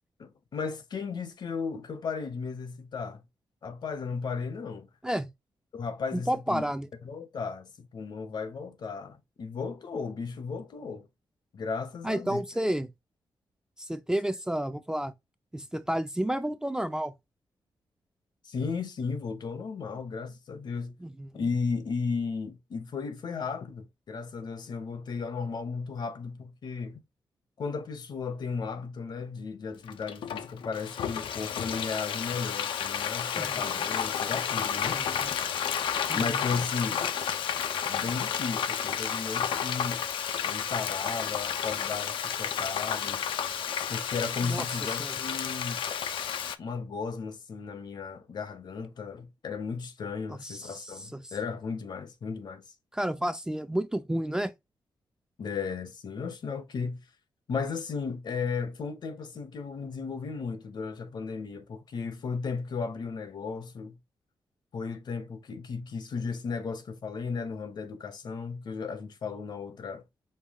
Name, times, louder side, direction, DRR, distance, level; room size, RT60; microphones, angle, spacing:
voice 1, 0.2-3.2 3.6-4.9 5.7-6.6 7.0-11.1 11.5-12.4 18.4-20.9 21.3-27.0 27.6-35.0 36.1-37.0 37.9-40.1 40.4-43.2 43.9-45.8 46.6-52.6 55.4-57.0 57.5-64.0 64.7-70.0, left 5 dB, 60° left, 0.8 m, -35 dB
voice 2, 6.1-6.9 12.0-12.9 13.8-15.1 15.5-17.1 21.0-21.3 33.3-33.6 34.9-35.3 36.1-36.4 44.4-45.2 50.3-51.3 52.9-54.5, right 1 dB, 10° right, 0.4 m, -31 dB
Frying (food), 29.9-46.6, left 8 dB, 85° left, 0.5 m, -31 dB
5.3 x 2.3 x 3.4 m
wide cardioid pair, 115°, 8 cm